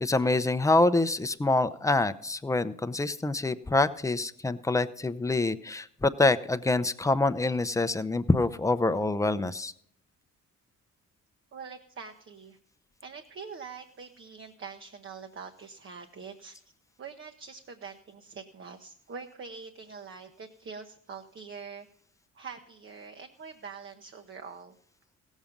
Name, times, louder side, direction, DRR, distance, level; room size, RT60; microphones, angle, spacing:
voice 1, 0.0-9.7, left 2 dB, 10° left, 12 dB, 0.6 m, -26 dB
voice 2, 11.5-12.6 13.0-16.6 17.0-21.9 22.3-24.7, right 5 dB, 40° right, 5 dB, 0.9 m, -44 dB
16.5 x 7.3 x 5.2 m, 0.66 s
cardioid pair, 90°, 30 cm